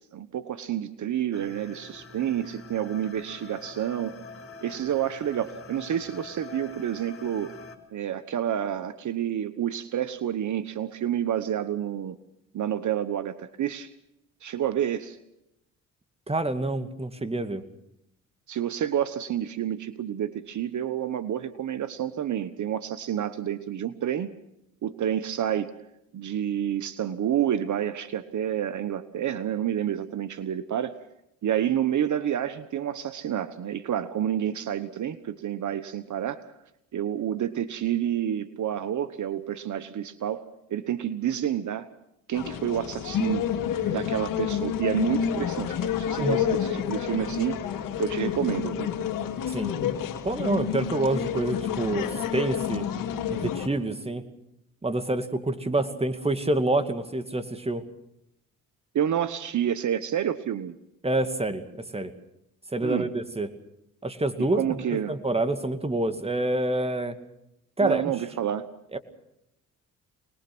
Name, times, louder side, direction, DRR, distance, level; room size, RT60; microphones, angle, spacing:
voice 1, 0.1-4.2 4.6-7.6 7.9-12.2 12.5-13.9 14.4-15.2 18.5-24.3 24.8-25.7 26.1-31.0 31.4-36.5 36.9-41.9 42.3-43.5 43.9-47.6 48.0-48.9 58.9-60.8 62.8-63.1 64.4-65.1 67.8-68.7, right 10 dB, 60° right, 13 dB, 1.2 m, -29 dB
sound 1, 1.3-7.8, left 4 dB, 40° left, 4.0 m, -45 dB
voice 2, 16.3-17.6 46.2-46.4 49.5-49.7 50.2-52.9 53.3-54.2 54.8-57.8 61.0-62.1 62.7-63.5 64.0-67.2 67.8-68.1 68.9-69.0, right 2 dB, 20° right, 9 dB, 2.3 m, -27 dB
sound 2, 42.3-53.7, left 9 dB, 85° left, 2.2 m, -29 dB
25.5 x 20.0 x 6.1 m, 0.83 s
supercardioid pair, 65°, 33 cm